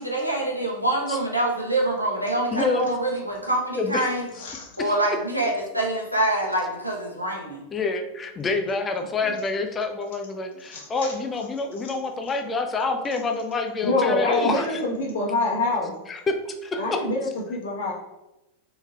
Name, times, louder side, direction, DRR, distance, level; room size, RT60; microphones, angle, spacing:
voice 1, 0.1-4.2 4.8-7.6, right 1 dB, 90° right, -2 dB, 0.9 m, -25 dB
voice 2, 2.5-2.9 3.8-4.1 4.8-4.9 7.7-14.8 16.1-17.0, left 4 dB, 20° left, 5 dB, 0.5 m, -27 dB
voice 3, 13.8-15.9 16.8-17.9, left 2 dB, 60° left, -2 dB, 1.1 m, -25 dB
4.1 x 3.6 x 2.3 m, 0.97 s
figure-of-eight pair, 90°, 0 cm